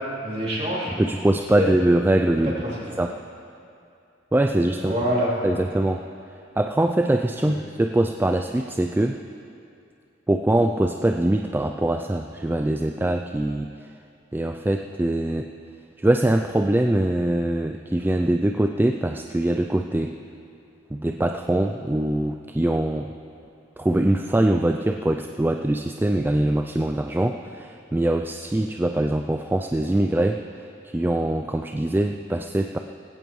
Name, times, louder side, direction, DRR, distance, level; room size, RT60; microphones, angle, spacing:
voice 1, 0.0-0.9 1.5-1.7 2.6-3.0 4.8-5.3 7.4-7.6, equal, 35° right, -6 dB, 3.4 m, -26 dB
voice 2, 1.0-2.5 3.0-3.1 4.3-4.9 5.4-6.0 6.6-9.2 10.3-13.7 14.3-15.5 16.0-20.1 20.9-23.1 23.8-30.4 30.8-32.8, right 1 dB, 10° right, 4 dB, 0.3 m, -23 dB
18.5 x 16.0 x 3.1 m, 2.6 s
head